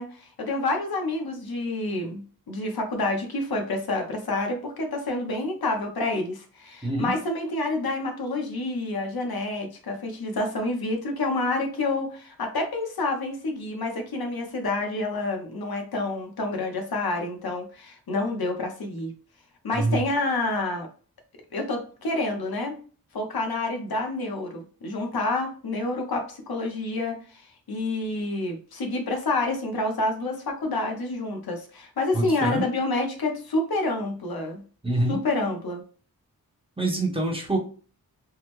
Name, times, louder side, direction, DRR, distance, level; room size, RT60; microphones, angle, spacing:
voice 1, 0.0-19.1 19.6-20.9 21.5-22.8 23.1-27.4 27.7-34.6 35.1-35.8, left 2 dB, 80° left, 3 dB, 0.8 m, -28 dB
voice 2, 6.8-7.1 19.7-20.0 32.1-32.6 34.8-35.2 36.8-37.6, right 2 dB, 15° right, 0 dB, 0.8 m, -25 dB
3.6 x 2.1 x 3.0 m, 0.41 s
wide cardioid pair, 100°, 36 cm